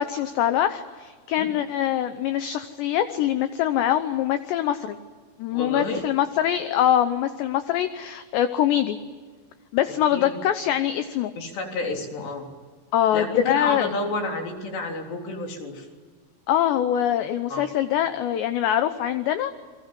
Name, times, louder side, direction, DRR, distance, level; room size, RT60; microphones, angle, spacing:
voice 1, 0.0-5.0 5.4-9.0 9.7-11.3 12.9-13.9 16.5-19.5, left 11 dB, 75° left, 10 dB, 2.7 m, -23 dB
voice 2, 5.5-6.0 10.1-10.4 11.4-12.4 13.1-15.9 17.5-17.6, left 3 dB, 60° left, 2 dB, 5.5 m, -30 dB
30.0 x 23.0 x 7.6 m, 1.5 s
omnidirectional pair, 5.8 m